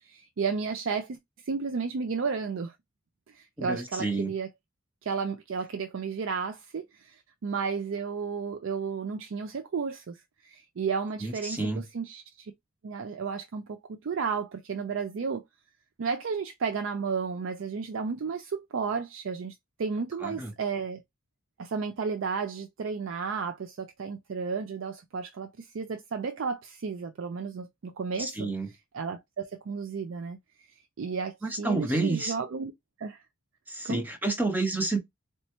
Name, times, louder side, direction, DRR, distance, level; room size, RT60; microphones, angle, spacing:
voice 1, 0.0-1.2 1.5-2.7 3.3-4.5 5.0-12.5 12.8-15.4 16.0-21.0 21.6-30.4 31.0-32.7 33.0-33.2 33.8-34.0, right 5 dB, 70° right, 0.4 m, -33 dB
voice 2, 3.6-4.3 11.2-11.8 20.2-20.5 28.2-28.7 31.4-32.3 33.7-35.0, right 3 dB, 10° right, 0.7 m, -29 dB
4.1 x 2.2 x 2.8 m
head